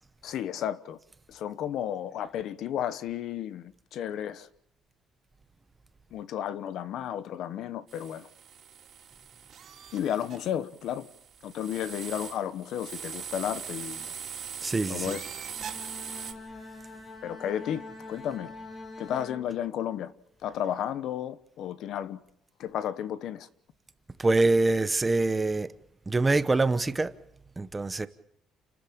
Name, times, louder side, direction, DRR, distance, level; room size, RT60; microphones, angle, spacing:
voice 1, 0.2-1.0 1.3-4.5 6.1-8.3 9.9-11.1 11.4-14.1 14.9-15.3 17.2-18.5 19.0-20.1 20.4-22.2 22.6-23.5, left 10 dB, 55° left, 1.1 m, -33 dB
sound 1, 7.9-16.3, right 8 dB, 40° right, 3.2 m, -41 dB
voice 2, 14.6-15.2 24.2-25.7 26.1-27.1 27.6-28.1, right 3 dB, 15° right, 0.9 m, -25 dB
Bowed string instrument, 15.4-20.1, left 3 dB, 30° left, 2.4 m, -45 dB
30.0 x 13.5 x 8.7 m
cardioid pair, 170°, 0 cm